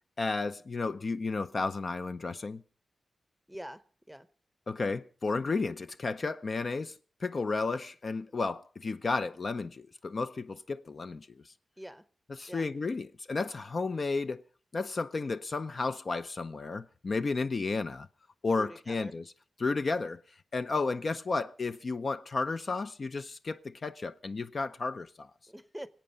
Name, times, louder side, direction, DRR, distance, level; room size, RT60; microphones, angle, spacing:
voice 1, 0.2-2.6 4.7-6.9 7.2-11.3 12.4-14.4 14.7-18.1 18.4-19.2 19.6-20.2 20.5-25.3, left 3 dB, 45° left, 0.6 m, -32 dB
voice 2, 3.5-4.3 11.8-12.0 12.5-12.7 18.5-19.1 25.5-25.9, equal, 5° right, 0.9 m, -45 dB
25.5 x 8.8 x 5.2 m
wide cardioid pair, 105°, 0 cm